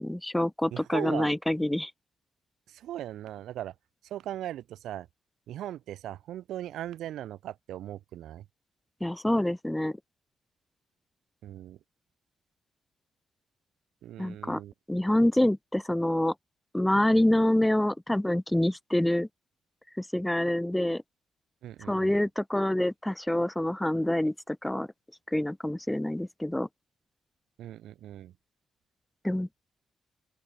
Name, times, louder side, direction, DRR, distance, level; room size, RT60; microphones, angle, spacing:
voice 1, 0.0-1.9 9.0-10.0 14.2-14.6 14.9-16.3 16.7-19.3 20.0-21.0 21.8-24.9 25.3-26.7 29.2-29.5, left 1 dB, 5° left, 5.5 m, -26 dB
voice 2, 0.7-1.3 2.7-3.7 4.0-5.1 5.5-8.4 11.4-11.8 14.0-14.7 21.6-22.1 27.6-28.3, right 12 dB, 85° right, 4.8 m, -38 dB
open air
cardioid pair, 80°, 0 cm